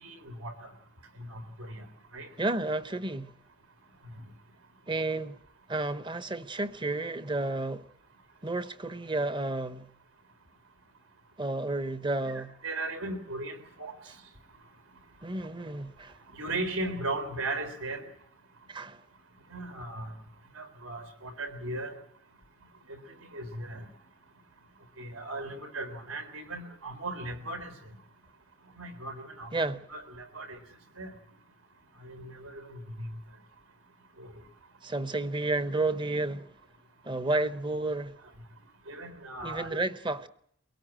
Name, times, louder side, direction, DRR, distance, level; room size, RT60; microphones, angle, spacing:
voice 1, 0.0-0.7 1.2-1.8 2.1-2.3 12.2-13.9 16.3-18.0 19.5-20.1 20.6-21.9 22.9-23.0 23.3-23.9 25.0-27.7 28.8-30.6 31.0-31.1 32.0-33.1 34.2-34.3 37.4-37.5 38.9-39.8, right 2 dB, 75° right, 3.7 m, -37 dB
voice 2, 2.4-3.3 4.9-5.4 5.7-7.9 8.4-9.9 11.4-12.5 15.2-16.2 18.7-19.0 29.5-29.8 34.8-36.5 37.0-38.1 39.4-40.3, right 2 dB, 20° right, 0.9 m, -31 dB
24.0 x 17.0 x 8.9 m
head